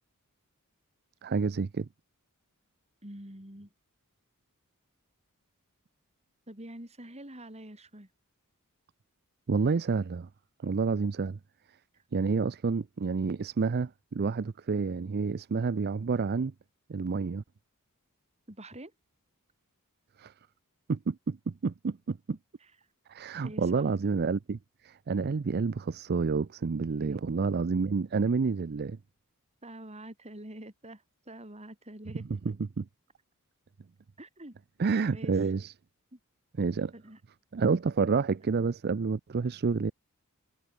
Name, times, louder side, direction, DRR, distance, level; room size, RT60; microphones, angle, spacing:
voice 1, 1.2-1.9 9.5-10.3 10.6-11.4 12.1-16.5 16.9-17.4 20.2-20.3 20.9-22.2 23.1-24.6 24.8-29.0 32.5-32.9 34.8-35.7 36.6-36.9 37.5-39.9, right 4 dB, 45° right, 0.5 m, -29 dB
voice 2, 3.0-3.7 6.5-8.1 18.5-18.9 22.6-22.7 23.4-23.8 27.0-27.2 29.6-32.5 34.2-34.6 35.1-35.3 36.1-36.2 36.9-37.2, right 1 dB, 30° right, 5.4 m, -46 dB
head